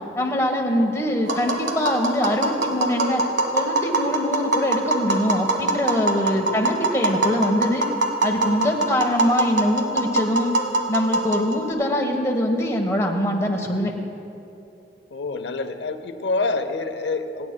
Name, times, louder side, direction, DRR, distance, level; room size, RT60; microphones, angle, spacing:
voice 1, 0.2-3.2 3.5-7.8 8.2-10.5 10.9-13.9, left 1 dB, 15° left, 1 dB, 1.1 m, -23 dB
Tap, 1.3-11.7, right 2 dB, 85° right, 1.4 m, -24 dB
voice 2, 6.3-6.6 8.8-8.9 15.1-17.5, left 3 dB, 80° left, 9 dB, 0.7 m, -27 dB
28.5 x 9.7 x 2.2 m, 2.8 s
head